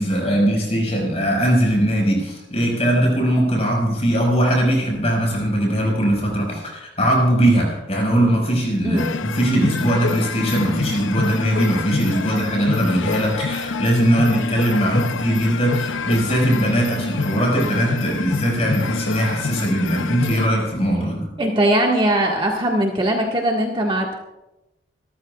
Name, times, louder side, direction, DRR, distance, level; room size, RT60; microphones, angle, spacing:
voice 1, 0.0-21.3, right 1 dB, 35° left, -1 dB, 5.8 m, -20 dB
sound 1, 9.0-20.5, left 4 dB, 70° left, 0.7 m, -27 dB
voice 2, 21.4-24.1, right 1 dB, 25° right, -1 dB, 1.8 m, -20 dB
26.5 x 14.0 x 2.4 m, 0.94 s
head